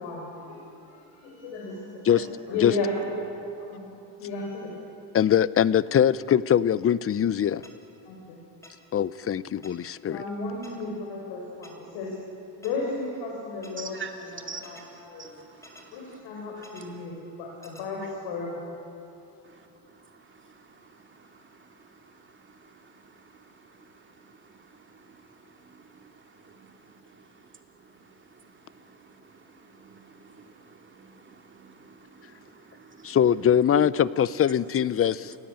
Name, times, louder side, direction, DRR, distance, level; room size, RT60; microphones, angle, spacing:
voice 1, 0.0-3.9 4.2-4.7 8.0-8.4 10.1-12.1 12.6-14.0 14.6-15.3 15.9-18.5, left 3 dB, 90° left, 5.0 m, -34 dB
voice 2, 5.1-7.6 8.9-10.2 33.0-35.2, left 9 dB, 35° left, 0.6 m, -22 dB
sound 1, 7.6-7.7 8.6-8.7 9.6-9.7 10.6-10.7 11.6-11.7 12.6-12.7 13.6-13.7 14.6-14.8 15.6-15.8 16.6-16.8 17.6-17.8, left 1 dB, 5° left, 3.4 m, -49 dB
voice 3, 13.8-17.0 18.0-18.1 19.4-34.7 35.2-35.4, right 5 dB, 30° right, 2.6 m, -46 dB
29.0 x 17.0 x 8.9 m
cardioid pair, 110°, 42 cm